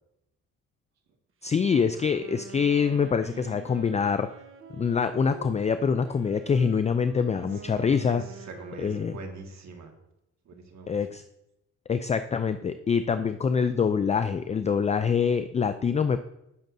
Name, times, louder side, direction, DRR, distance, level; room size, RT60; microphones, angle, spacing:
voice 1, 1.4-4.3 4.8-8.2 8.8-9.1 10.9-11.2 11.9-16.2, left 6 dB, 25° left, 10 dB, 0.4 m, -25 dB
Wind instrument woodwind instrument, 1.6-9.5, right 5 dB, 45° right, 1.1 m, -46 dB
voice 2, 7.5-9.9 10.5-11.0, right 3 dB, 60° right, 2 dB, 1.9 m, -43 dB
15.0 x 6.6 x 2.7 m, 0.87 s
cardioid pair, 90°, 30 cm